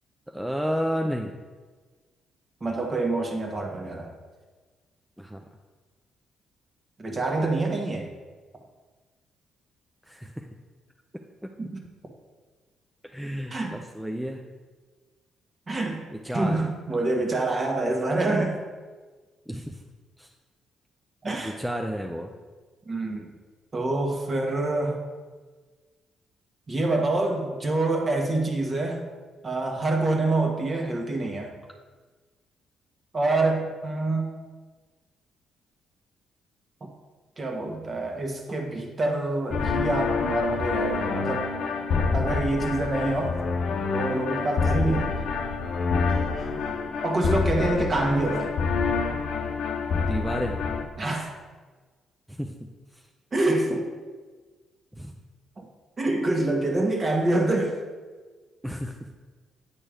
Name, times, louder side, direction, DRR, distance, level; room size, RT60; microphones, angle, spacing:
voice 1, 0.3-1.3 5.2-5.4 10.1-10.5 11.4-11.5 13.1-14.4 16.1-16.7 19.5-19.8 20.2-20.3 21.4-22.3 44.8-45.1 50.0-50.6 52.3-52.5 55.0-55.1 58.6-59.0, equal, 5° right, 3 dB, 0.5 m, -31 dB
voice 2, 2.6-4.1 7.0-8.1 11.6-11.8 13.5-13.8 15.7-16.0 16.3-18.6 21.2-21.6 22.9-23.3 23.7-25.0 26.7-29.0 29.4-31.5 33.1-34.3 37.4-41.5 42.1-43.4 43.9-45.2 47.0-48.5 51.0-51.3 53.3-53.8 55.6-55.7 56.0-57.8, right 2 dB, 35° right, 2 dB, 1.4 m, -26 dB
sound 1, 39.5-50.8, left 5 dB, 65° left, 0.8 m, -27 dB
8.8 x 4.4 x 5.1 m, 1.4 s
cardioid pair, 90°, 0 cm